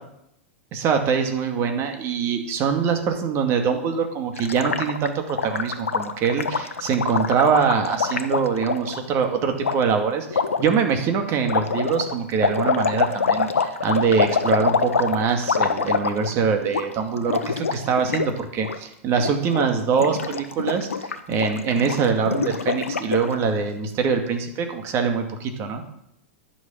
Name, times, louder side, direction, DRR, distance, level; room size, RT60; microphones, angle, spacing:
voice 1, 0.7-25.8, right 6 dB, 40° right, 5 dB, 2.3 m, -23 dB
Gurgling, 4.4-9.0 9.6-9.8 10.3-10.7 11.4-16.4 16.6-16.8 17.1-18.3 18.5-18.8 19.1-19.6 19.9-23.3, left 5 dB, 85° left, 1.0 m, -25 dB
11.0 x 6.4 x 9.0 m, 0.78 s
hypercardioid pair, 105°, 7 cm